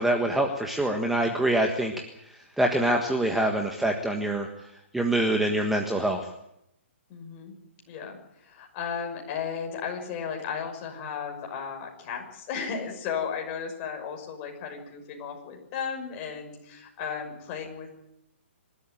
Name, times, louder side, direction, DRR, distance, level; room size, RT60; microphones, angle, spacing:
voice 1, 0.0-1.9 2.2-4.5 4.9-6.3, right 1 dB, 5° right, 3 dB, 1.5 m, -25 dB
voice 2, 7.1-7.5 7.9-17.9, left 6 dB, 30° left, 2 dB, 5.9 m, -35 dB
26.5 x 13.0 x 9.2 m, 0.82 s
hypercardioid pair, 155°, 7 cm